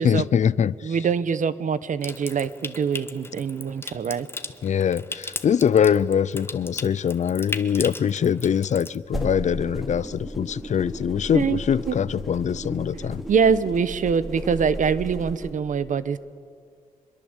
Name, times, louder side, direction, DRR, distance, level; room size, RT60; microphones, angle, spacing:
voice 1, 0.0-0.9 4.6-13.2, left 8 dB, 55° left, 0.5 m, -23 dB
voice 2, 0.8-4.3 11.3-11.6 11.9-12.0 13.3-16.2, right 6 dB, 65° right, 1.0 m, -24 dB
Water tap faucet / Sink (filling or washing) / Trickle dribble, 2.0-9.0, left 2 dB, 15° left, 1.2 m, -37 dB
sound 1, 9.0-15.5, right 1 dB, ahead, 3.8 m, -35 dB
25.0 x 22.0 x 8.1 m
wide cardioid pair, 115°, 14 cm